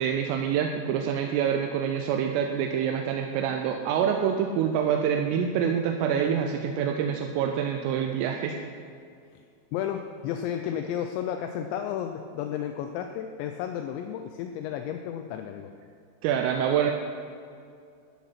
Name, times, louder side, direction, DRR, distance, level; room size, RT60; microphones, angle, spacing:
voice 1, 0.0-8.6 16.2-16.9, right 8 dB, 85° right, 3 dB, 3.3 m, -26 dB
voice 2, 9.7-15.7, left 9 dB, 85° left, 6 dB, 2.5 m, -32 dB
13.5 x 10.5 x 5.8 m, 2.3 s
omnidirectional pair, 5.8 m